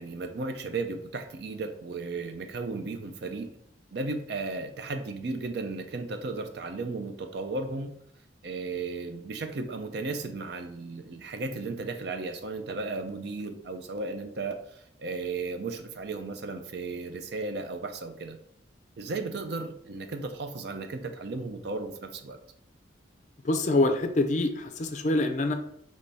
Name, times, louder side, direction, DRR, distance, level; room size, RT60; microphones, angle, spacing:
voice 1, 0.0-3.5 3.9-7.9 8.4-18.4 19.0-22.4, right 3 dB, 60° right, 7 dB, 0.5 m, -35 dB
voice 2, 23.4-25.5, left 2 dB, 40° left, 6 dB, 0.4 m, -25 dB
3.4 x 3.1 x 4.0 m, 0.72 s
head